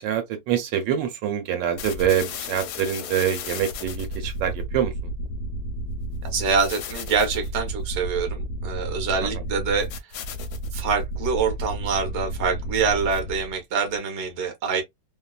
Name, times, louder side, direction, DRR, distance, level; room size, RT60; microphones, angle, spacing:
voice 1, 0.0-4.9, right 9 dB, 80° right, 1.3 m, -25 dB
sound 1, 1.8-13.6, equal, 70° left, 1.0 m, -32 dB
voice 2, 6.2-9.9 10.7-14.8, right 5 dB, 50° right, 0.9 m, -25 dB
2.9 x 2.3 x 2.2 m
omnidirectional pair, 2.0 m